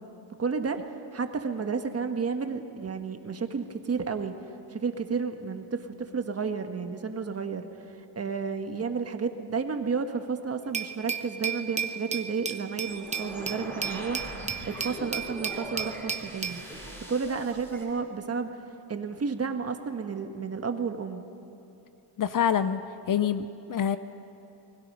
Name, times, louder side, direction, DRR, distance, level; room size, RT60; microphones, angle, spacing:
voice 1, 0.4-0.8 1.1-4.4 4.7-14.2 14.6-16.6 17.1-18.5 18.9-21.2, right 5 dB, 30° right, 6 dB, 1.4 m, -31 dB
Glass, 10.7-16.6, right 6 dB, 15° right, 0.9 m, -34 dB
sound 1, 12.8-17.8, equal, 5° left, 5.3 m, -41 dB
voice 2, 22.2-22.8 23.1-24.0, left 8 dB, 40° left, 12 dB, 0.7 m, -26 dB
29.5 x 20.5 x 5.5 m, 2.9 s
cardioid pair, 125°, 49 cm